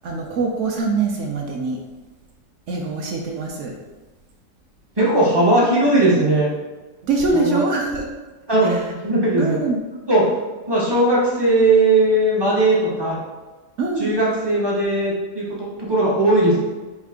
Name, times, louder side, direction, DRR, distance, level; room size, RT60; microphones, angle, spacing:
voice 1, 0.0-1.8 2.7-3.7 7.0-8.1 8.6-8.8 9.4-9.8 13.8-14.2, right 3 dB, 70° right, 1 dB, 0.7 m, -23 dB
voice 2, 5.0-6.5 7.3-7.6 8.5-8.8 9.0-9.5 10.1-10.2 10.7-13.2 14.0-16.6, right 2 dB, 40° right, -6 dB, 0.3 m, -18 dB
4.5 x 2.4 x 3.5 m, 1.2 s
omnidirectional pair, 1.7 m